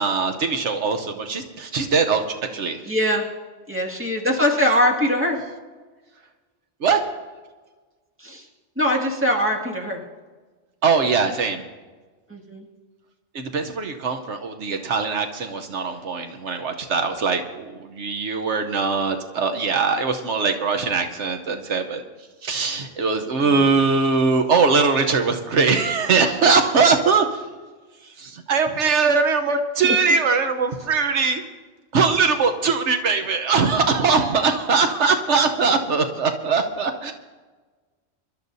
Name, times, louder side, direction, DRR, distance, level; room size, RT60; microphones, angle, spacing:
voice 1, 0.0-2.8 6.8-7.0 10.8-11.7 13.3-22.0 22.4-27.4 28.2-31.4 31.9-37.1, right 4 dB, 80° right, 6 dB, 1.2 m, -21 dB
voice 2, 2.9-3.2 3.7-5.4 8.2-8.4 8.8-10.0 12.3-12.6 23.4-23.6 29.8-30.0, equal, 10° right, -1 dB, 2.1 m, -22 dB
25.5 x 12.5 x 2.7 m, 1.3 s
omnidirectional pair, 1.2 m